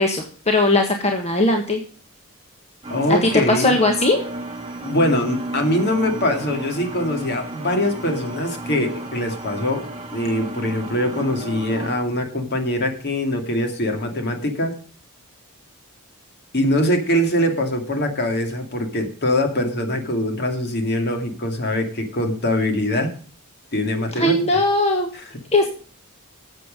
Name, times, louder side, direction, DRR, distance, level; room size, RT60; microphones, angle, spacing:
voice 1, 0.0-1.8 3.1-4.2 24.1-25.1 25.5-25.7, left 2 dB, 30° left, 3 dB, 1.4 m, -19 dB
sound 1, 2.8-11.9, right 2 dB, 25° right, 2.8 m, -33 dB
voice 2, 2.9-3.7 4.8-9.8 10.1-14.8 16.5-23.1 23.7-24.4, left 1 dB, 50° left, 4 dB, 2.4 m, -23 dB
13.0 x 7.8 x 5.2 m, 0.43 s
head